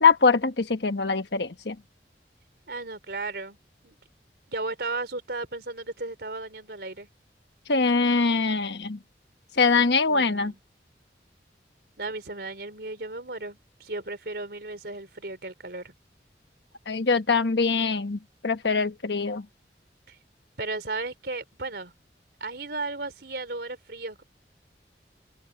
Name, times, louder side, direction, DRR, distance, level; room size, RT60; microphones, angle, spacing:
voice 1, 0.0-1.7 7.7-9.0 9.6-10.5 16.9-19.4, left 4 dB, 80° left, 1.2 m, -23 dB
voice 2, 2.7-3.6 3.8-4.0 4.5-7.1 10.1-10.6 12.0-15.9 20.1-20.2 20.6-21.9 22.4-24.2, right 3 dB, 70° right, 3.5 m, -35 dB
open air
head